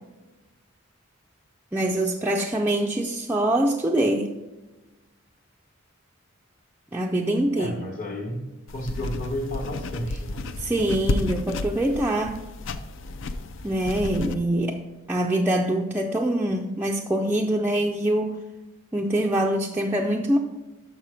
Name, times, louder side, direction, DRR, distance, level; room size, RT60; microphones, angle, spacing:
voice 1, 1.7-4.3 6.9-7.7 10.6-12.4 13.6-14.8 15.1-18.4 18.9-20.4, right 1 dB, 10° right, -1 dB, 0.3 m, -24 dB
voice 2, 7.5-10.5, equal, 40° left, -5 dB, 1.0 m, -32 dB
sound 1, 8.7-14.3, left 2 dB, 65° left, 0.4 m, -32 dB
6.4 x 5.7 x 4.9 m, 1.1 s
head